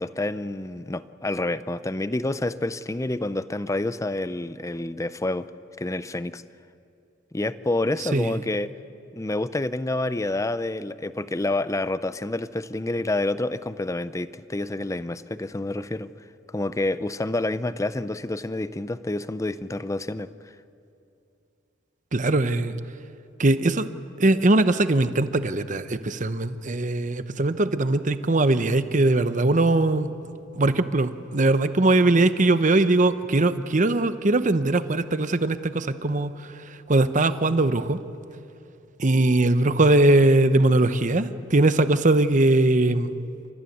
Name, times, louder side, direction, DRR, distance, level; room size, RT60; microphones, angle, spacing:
voice 1, 0.0-5.5 5.8-6.4 7.3-8.7 9.1-16.1 16.5-20.5, left 2 dB, 15° left, 14 dB, 0.5 m, -28 dB
voice 2, 22.1-22.7 23.4-23.9 24.2-30.1 30.6-36.3 36.9-38.0 39.0-43.1, right 2 dB, 40° right, 12 dB, 0.8 m, -20 dB
28.5 x 14.5 x 9.4 m, 2.7 s
head